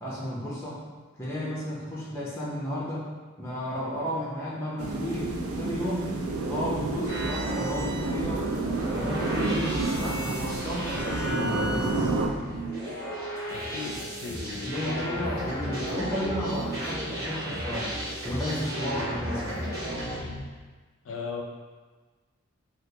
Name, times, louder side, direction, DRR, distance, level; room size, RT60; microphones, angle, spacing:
voice 1, 0.0-0.8 1.2-3.1 3.4-6.1 6.5-8.5 8.9-12.1 14.6-17.9 18.2-19.6, equal, 10° left, -8 dB, 0.7 m, -33 dB
sound 1, 4.8-12.3, right 2 dB, 85° right, 0.4 m, -30 dB
sound 2, 7.1-20.4, right 1 dB, 45° right, 1.1 m, -34 dB
voice 2, 13.5-15.5 21.0-21.4, left 4 dB, 70° left, 1 dB, 0.5 m, -37 dB
3.4 x 2.5 x 2.8 m, 1.4 s
head